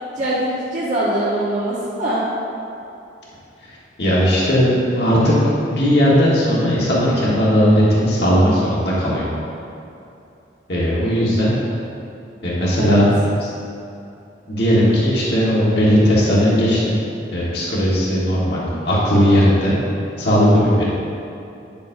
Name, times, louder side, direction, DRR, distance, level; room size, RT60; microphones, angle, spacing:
voice 1, 0.2-2.2 12.8-13.0 20.6-20.8, right 1 dB, 40° right, -8 dB, 1.0 m, -23 dB
voice 2, 4.0-5.3 5.6-9.3 10.7-11.5 12.4-13.5 14.5-17.0 17.3-19.7 20.2-20.8, equal, 60° left, -7 dB, 1.4 m, -17 dB
9.3 x 6.9 x 2.7 m, 2.7 s
head